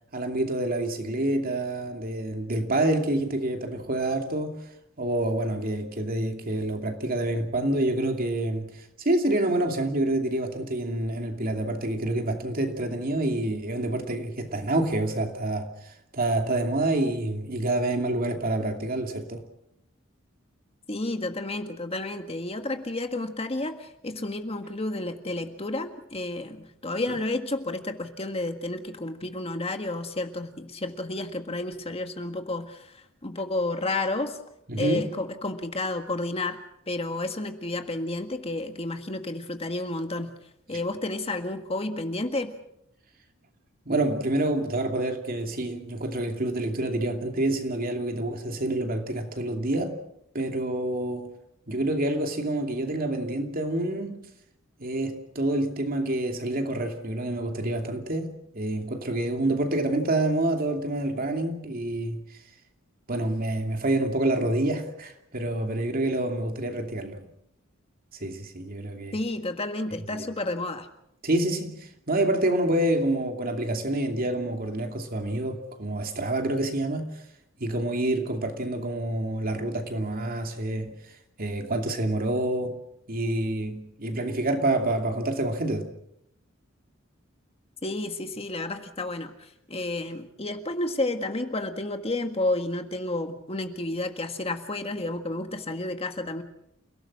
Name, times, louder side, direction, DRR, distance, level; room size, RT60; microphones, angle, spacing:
voice 1, 0.1-4.6 5.0-15.7 16.1-19.4 34.7-35.1 43.9-50.0 50.3-51.3 51.7-54.2 54.8-62.2 63.1-67.2 68.2-69.2 70.1-70.3 71.2-77.1 77.6-80.9 81.4-82.8 83.1-85.9, right 1 dB, 45° right, 2.7 m, -27 dB
voice 2, 20.9-34.4 34.8-36.6 36.9-40.3 40.7-42.5 69.1-70.9 87.8-96.4, left 2 dB, 30° left, 1.7 m, -31 dB
29.0 x 17.5 x 6.2 m
head